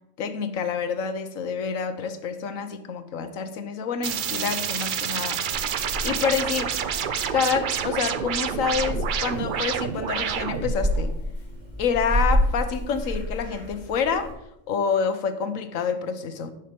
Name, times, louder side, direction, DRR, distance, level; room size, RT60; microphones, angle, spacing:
voice 1, 0.2-5.7 6.0-6.7 7.3-11.1 11.8-14.3 14.7-16.5, left 6 dB, 90° left, 10 dB, 1.3 m, -27 dB
sound 1, 4.0-10.8, right 8 dB, 55° right, 0.6 m, -28 dB
Purr / Meow, 5.5-14.3, equal, 35° right, 3.2 m, -30 dB
10.5 x 5.8 x 5.4 m, 0.84 s
omnidirectional pair, 1.3 m